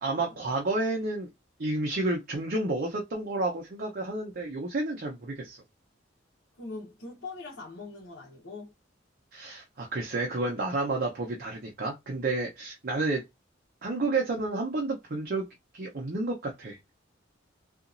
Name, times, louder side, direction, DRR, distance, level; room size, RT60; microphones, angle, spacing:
voice 1, 0.0-1.3 1.6-5.6 9.3-13.2 13.8-15.4 15.7-16.8, right 2 dB, 50° right, 0.7 m, -30 dB
voice 2, 6.6-8.7, left 3 dB, 80° left, 1.1 m, -42 dB
2.9 x 2.4 x 2.6 m
head